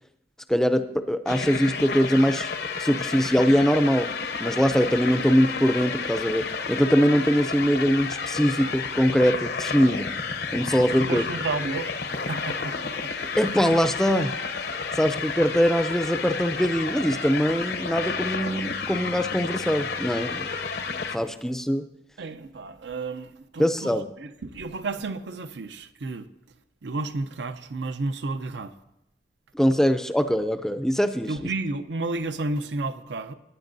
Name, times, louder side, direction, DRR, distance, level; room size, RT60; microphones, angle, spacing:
voice 1, 0.5-2.5 2.8-4.1 4.4-10.1 10.5-11.2 13.4-14.4 14.9-20.5 21.1-21.8 23.6-24.1 29.5-31.3, equal, 5° left, 0.4 m, -22 dB
sound 1, 1.3-21.2, left 5 dB, 70° left, 0.7 m, -31 dB
voice 2, 11.0-13.1 22.2-26.3 26.8-28.7 31.3-33.3, right 3 dB, 85° right, 0.6 m, -32 dB
17.5 x 9.6 x 2.7 m
head